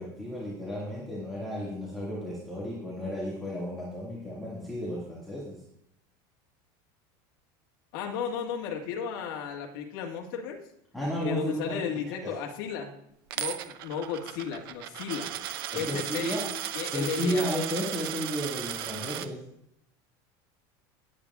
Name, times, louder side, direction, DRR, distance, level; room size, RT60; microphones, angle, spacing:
voice 1, 0.0-5.6 10.9-12.3 15.7-16.5 16.8-19.4, equal, ahead, -7 dB, 2.0 m, -33 dB
voice 2, 7.9-10.6 11.2-12.9 13.4-15.3 15.7-16.4 16.7-17.5, left 7 dB, 70° left, 0 dB, 1.7 m, -34 dB
Coin (dropping), 13.3-19.3, right 12 dB, 85° right, 0.7 m, -36 dB
19.0 x 8.4 x 2.4 m, 0.77 s
supercardioid pair, 165°, 12 cm